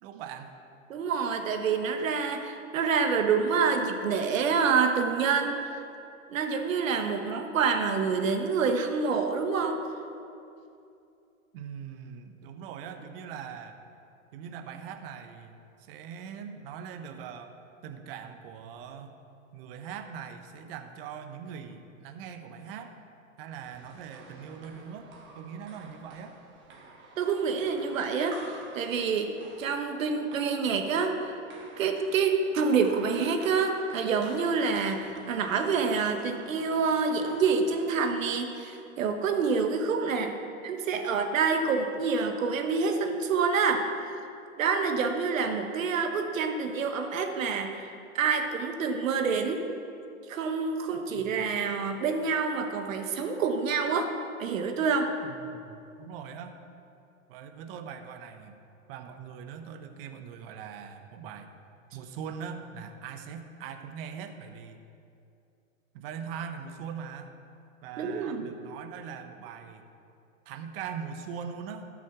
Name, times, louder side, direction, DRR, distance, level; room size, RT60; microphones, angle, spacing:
voice 1, 0.0-0.5 11.5-13.8 14.3-17.5 17.8-19.2 19.5-22.9 23.4-25.1 25.3-26.4 51.2-51.3 55.3-56.6 57.3-58.6 58.9-61.5 61.9-64.8 65.9-67.3 67.8-69.8 70.5-71.9, right 7 dB, 45° right, 7 dB, 1.0 m, -41 dB
voice 2, 0.9-5.6 6.3-9.8 27.2-28.4 28.7-29.3 29.6-31.2 31.8-40.3 40.6-43.9 44.6-49.6 50.3-54.1 54.4-55.1 68.0-68.5, right 5 dB, 70° right, 5 dB, 1.4 m, -27 dB
sound 1, 23.5-38.4, right 3 dB, 30° right, 1.6 m, -49 dB
12.5 x 6.2 x 6.0 m, 2.6 s
hypercardioid pair, 130°, 41 cm